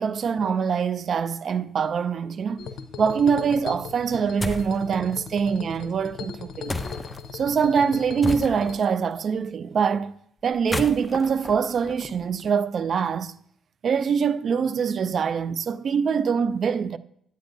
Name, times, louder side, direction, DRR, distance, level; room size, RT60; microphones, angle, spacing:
voice 1, 0.0-2.7 3.0-6.8 7.3-10.1 10.4-13.3 13.8-17.0, right 6 dB, 55° right, 0.4 m, -24 dB
sound 1, 2.6-8.8, left 6 dB, 70° left, 0.6 m, -38 dB
sound 2, 4.4-4.8 6.7-7.2 8.2-8.9 10.5-12.5, left 2 dB, 15° left, 0.6 m, -32 dB
9.1 x 9.0 x 2.6 m
cardioid pair, 90°, 0 cm